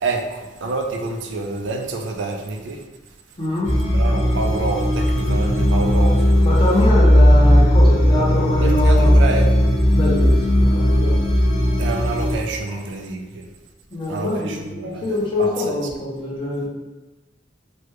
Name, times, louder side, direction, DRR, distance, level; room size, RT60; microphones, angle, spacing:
voice 1, 0.0-2.8 3.9-6.4 8.6-9.6 11.8-13.5 14.1-15.8, right 3 dB, 85° right, 3 dB, 0.4 m, -28 dB
voice 2, 3.4-3.7 6.4-9.1 9.9-11.2 13.9-16.7, left 1 dB, 25° left, -5 dB, 0.8 m, -24 dB
sound 1, 3.6-12.4, equal, 90° left, 0.9 m, -16 dB
3.3 x 2.2 x 3.0 m, 1.1 s
head